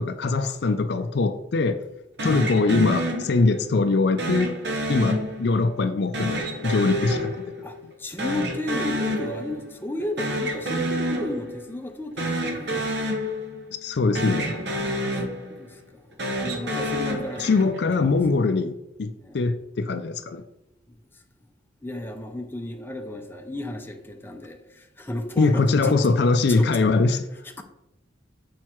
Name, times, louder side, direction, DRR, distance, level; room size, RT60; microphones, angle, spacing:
voice 1, 0.0-1.8 2.2-4.6 4.9-7.4 13.8-14.5 17.4-20.4 25.4-27.2, left 3 dB, 55° left, 9 dB, 0.4 m, -22 dB
sound 1, 2.2-3.7 4.2-5.7 6.1-7.9 8.2-9.7 10.0-11.7 12.1-13.9 14.1-15.7 16.1-17.9, equal, 60° right, 1.0 m, -29 dB
voice 2, 7.6-12.9 14.6-16.1 16.4-18.2 19.2-19.5 20.9-21.2 21.8-26.2 26.5-27.6, left 1 dB, 10° left, 4 dB, 0.6 m, -34 dB
6.3 x 4.7 x 4.5 m, 0.86 s
head